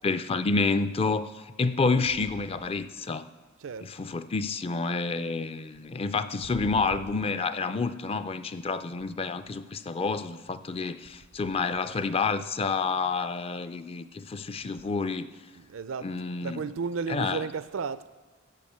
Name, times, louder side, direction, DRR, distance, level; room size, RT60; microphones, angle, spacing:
voice 1, 0.0-1.3 1.6-3.3 3.8-15.3 16.0-16.6 17.1-17.5, left 4 dB, 30° left, 0.4 m, -29 dB
voice 2, 6.4-6.8 15.5-16.1 16.4-18.1, right 5 dB, 75° right, 0.5 m, -34 dB
13.5 x 5.0 x 8.5 m
head